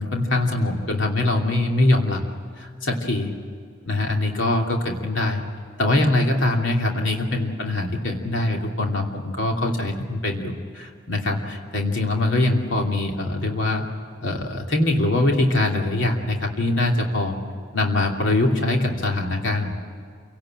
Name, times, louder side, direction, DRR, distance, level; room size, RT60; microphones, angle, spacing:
voice 1, 0.0-2.2 2.6-3.3 3.9-5.4 5.8-13.8 14.2-17.3 17.7-19.7, left 2 dB, 75° left, 1 dB, 2.8 m, -23 dB
27.5 x 18.0 x 7.8 m, 2.2 s
head